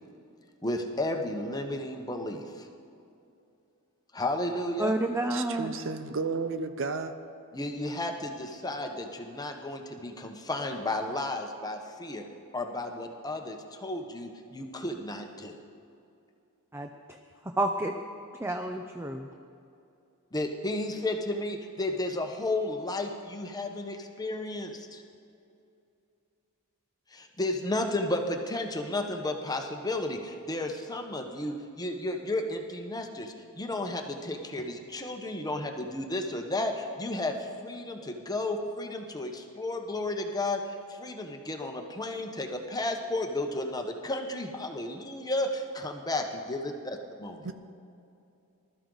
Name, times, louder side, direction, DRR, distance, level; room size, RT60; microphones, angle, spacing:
voice 1, 0.6-2.6 4.1-4.9 7.5-12.2 12.5-15.6 20.3-25.0 27.1-46.6 47.2-47.4, left 2 dB, 15° left, 4 dB, 1.0 m, -33 dB
voice 2, 4.8-5.7 16.7-16.9 17.6-17.9 18.4-19.3, right 1 dB, 10° right, 5 dB, 0.5 m, -29 dB
voice 3, 5.3-7.1 47.4-47.5, right 4 dB, 60° right, 9 dB, 0.7 m, -33 dB
20.0 x 12.5 x 4.0 m, 2.6 s
head